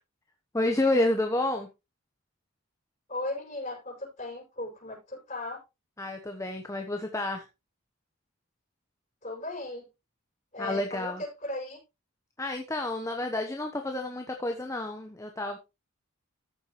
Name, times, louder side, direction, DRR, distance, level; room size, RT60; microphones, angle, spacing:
voice 1, 0.5-1.7 6.0-7.4 10.6-11.2 12.4-15.6, left 2 dB, 15° left, 4 dB, 0.9 m, -29 dB
voice 2, 3.1-5.6 9.2-9.9 10.5-11.8, left 2 dB, 35° left, -1 dB, 6.3 m, -37 dB
14.0 x 7.2 x 3.1 m, 0.25 s
head